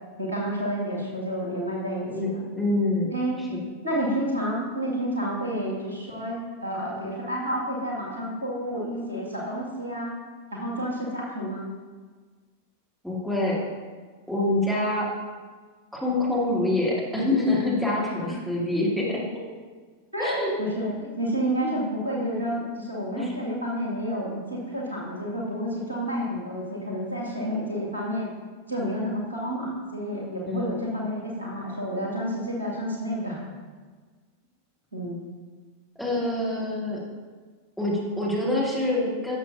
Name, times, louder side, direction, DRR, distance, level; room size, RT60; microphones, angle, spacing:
voice 1, 0.2-2.0 2.3-2.4 3.1-3.4 3.8-10.1 10.5-11.7 18.1-18.4 20.1-28.3 28.7-33.4 34.9-35.2, equal, 80° right, -4 dB, 2.1 m, -30 dB
voice 2, 2.0-3.1 3.5-3.6 13.0-13.6 14.3-15.1 15.9-19.2 20.2-20.5 21.6-21.8 23.2-23.3 30.5-30.7 36.0-37.0 37.8-39.4, left 2 dB, ahead, -6 dB, 2.2 m, -26 dB
12.0 x 7.3 x 2.7 m, 1.5 s
figure-of-eight pair, 90°, 0 cm